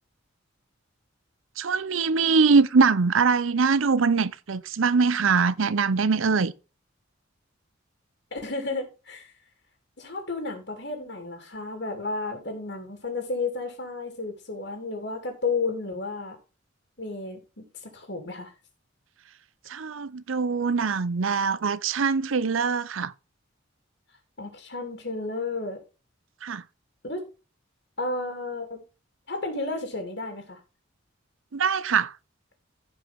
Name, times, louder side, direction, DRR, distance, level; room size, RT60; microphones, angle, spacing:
voice 1, 1.6-6.5 19.7-23.1 26.4-26.6 31.5-32.1, right 5 dB, 85° right, 0.6 m, -23 dB
voice 2, 8.3-9.3 10.0-16.4 17.0-18.5 24.4-25.8 27.0-27.2 28.0-28.8 29.3-30.6, left 3 dB, 60° left, 2.7 m, -32 dB
16.0 x 5.5 x 3.5 m
head